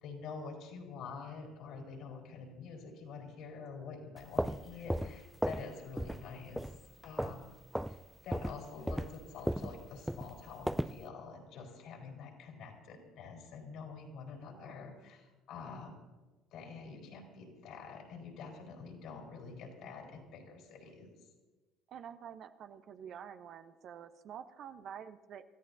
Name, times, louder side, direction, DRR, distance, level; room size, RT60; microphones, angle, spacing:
voice 1, 0.0-6.7 7.0-7.4 7.9-16.0 16.5-21.1, left 5 dB, 65° left, 0 dB, 4.2 m, -47 dB
sound 1, 4.2-5.7 6.0-6.3 6.6-7.4 7.7-8.0 8.3-11.0, equal, 5° right, 0.5 m, -35 dB
voice 2, 14.5-14.9 21.9-25.4, right 8 dB, 55° right, 9 dB, 0.9 m, -48 dB
28.5 x 14.5 x 2.7 m, 1.2 s
hypercardioid pair, 65°, 0 cm